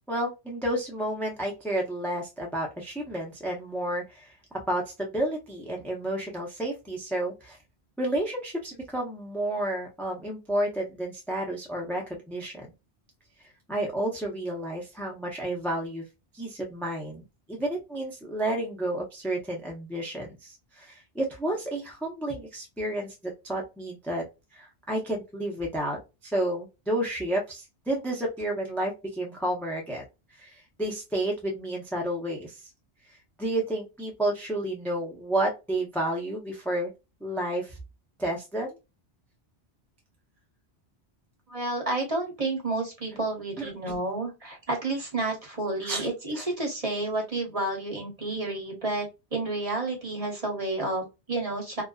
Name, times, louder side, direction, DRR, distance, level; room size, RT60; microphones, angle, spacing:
voice 1, 0.1-4.3 4.7-7.6 8.0-12.6 13.7-16.0 16.3-17.2 17.5-24.2 24.5-26.0 26.2-30.0 30.4-32.6 33.4-36.9 37.2-37.8 38.2-38.8 43.6-44.0 45.8-46.1 46.3-46.5, right 1 dB, ahead, -1 dB, 0.5 m, -31 dB
voice 2, 41.5-51.8, right 2 dB, 35° right, 1 dB, 0.9 m, -30 dB
2.4 x 2.2 x 2.2 m, 0.25 s
omnidirectional pair, 1.1 m